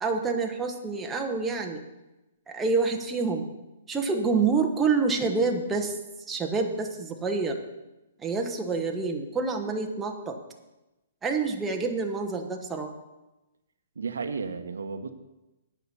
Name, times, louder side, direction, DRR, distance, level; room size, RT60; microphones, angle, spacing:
voice 1, 0.0-1.8 2.5-3.5 3.9-6.0 6.3-7.6 8.2-10.4 11.2-12.9, right 4 dB, 10° right, 2 dB, 1.2 m, -27 dB
voice 2, 14.0-15.1, right 5 dB, 85° right, 8 dB, 1.0 m, -33 dB
9.1 x 5.9 x 8.3 m, 1.0 s
hypercardioid pair, 140°, 0 cm